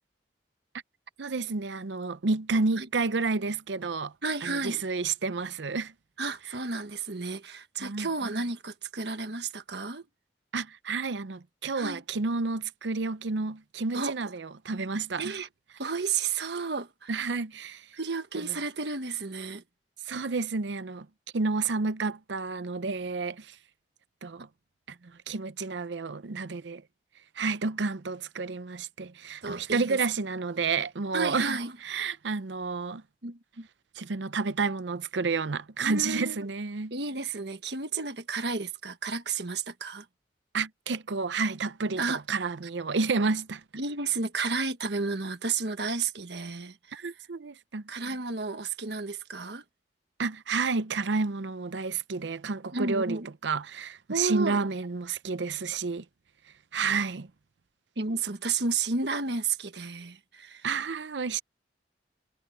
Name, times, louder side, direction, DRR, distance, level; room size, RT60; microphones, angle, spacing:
voice 1, 1.2-4.1 4.4-5.9 7.8-8.1 10.5-15.3 17.1-17.9 20.1-21.1 21.3-23.6 24.2-24.5 24.9-26.8 27.4-31.6 31.8-33.0 34.0-36.9 40.5-43.6 46.9-47.8 50.2-56.0 56.7-57.3 60.6-61.4, right 4 dB, 85° right, 0.7 m, -30 dB
voice 2, 4.2-4.8 6.2-10.0 11.7-12.0 13.9-14.2 15.2-15.5 15.8-17.1 17.9-19.6 29.4-30.0 31.1-31.7 33.2-33.7 35.8-36.5 36.9-40.1 42.0-42.2 43.8-47.1 47.9-49.6 52.7-53.3 54.1-54.7 58.0-60.7, right 4 dB, 70° right, 1.5 m, -32 dB
head